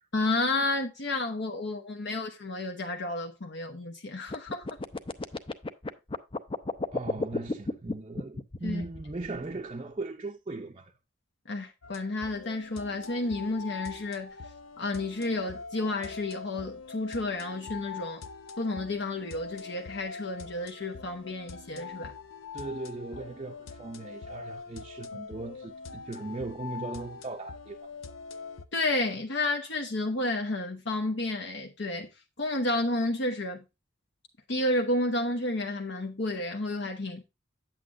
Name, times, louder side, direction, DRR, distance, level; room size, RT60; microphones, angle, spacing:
voice 1, 0.1-4.8 8.6-8.8 11.5-14.3 14.8-18.2 18.6-22.1 28.7-32.1 32.4-33.6 34.5-37.2, left 2 dB, 60° left, 1.0 m, -31 dB
sound 1, 4.3-9.5, left 2 dB, 25° left, 0.6 m, -33 dB
voice 2, 6.9-10.9 22.5-27.9, right 2 dB, 30° right, 0.6 m, -38 dB
sound 2, 11.8-28.6, left 5 dB, 85° left, 0.8 m, -43 dB
8.6 x 8.3 x 2.5 m
head